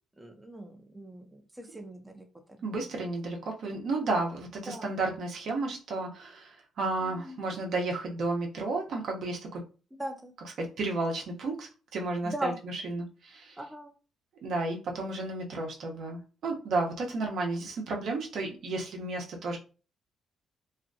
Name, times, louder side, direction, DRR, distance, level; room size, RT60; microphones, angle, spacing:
voice 1, 0.2-2.2 2.6-2.9 4.7-4.9 7.0-7.4 9.9-10.3 12.2-12.6 13.6-13.9, right 1 dB, 15° right, 4 dB, 0.4 m, -39 dB
voice 2, 2.6-9.6 10.6-13.6 14.4-19.6, right 2 dB, 65° right, 1 dB, 0.7 m, -32 dB
2.5 x 2.2 x 2.5 m, 0.35 s
cardioid pair, 90°, 0 cm